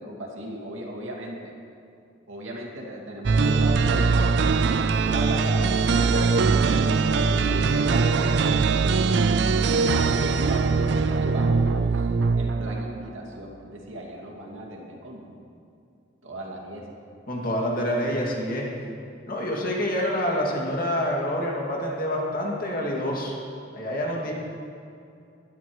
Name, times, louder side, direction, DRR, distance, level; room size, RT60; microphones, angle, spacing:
voice 1, 0.0-1.5 2.3-4.3 5.1-8.4 8.8-9.8 10.2-12.1 12.4-15.4 16.2-16.9, right 1 dB, 90° right, -1 dB, 2.4 m, -37 dB
sound 1, 3.2-13.1, right 4 dB, 60° right, 0.4 m, -21 dB
voice 2, 17.3-18.7 19.3-23.3 23.7-24.3, equal, 45° left, -3 dB, 2.4 m, -27 dB
20.5 x 12.0 x 3.2 m, 2.5 s
head